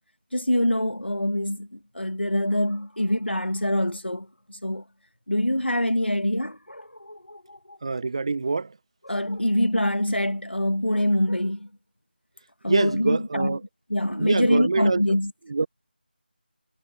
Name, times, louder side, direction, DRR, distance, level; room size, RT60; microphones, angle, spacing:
voice 1, 0.3-4.8 5.3-7.8 9.1-11.7 12.6-13.6 13.9-15.3, left 1 dB, 90° left, 2.2 m, -25 dB
voice 2, 7.8-8.8 12.7-13.6 14.1-15.2 15.5-15.7, right 4 dB, 30° right, 1.2 m, -25 dB
figure-of-eight pair, 165°, 6 cm